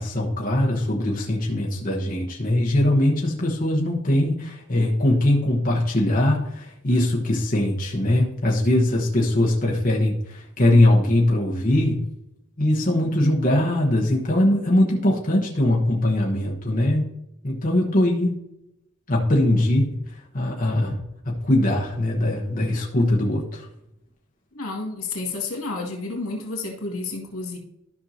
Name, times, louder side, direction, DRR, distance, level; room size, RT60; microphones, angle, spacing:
voice 1, 0.0-12.0 12.6-17.1 17.4-18.4 19.1-20.0 20.3-21.0 21.2-23.7, left 1 dB, 40° left, 1.1 m, -21 dB
voice 2, 24.5-27.6, left 3 dB, 85° left, 2.4 m, -30 dB
13.5 x 5.5 x 2.8 m
head